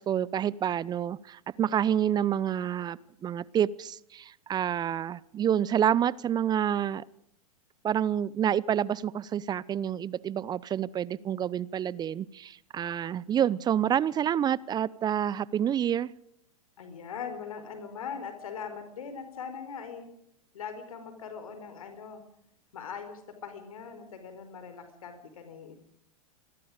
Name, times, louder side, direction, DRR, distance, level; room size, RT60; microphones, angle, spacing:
voice 1, 0.0-7.0 7.8-16.1, right 9 dB, 20° right, 22 dB, 0.8 m, -28 dB
voice 2, 16.8-20.1 20.5-22.2 22.7-25.8, left 6 dB, 70° left, 8 dB, 4.7 m, -41 dB
27.5 x 21.5 x 5.1 m, 0.74 s
figure-of-eight pair, 100°, 19 cm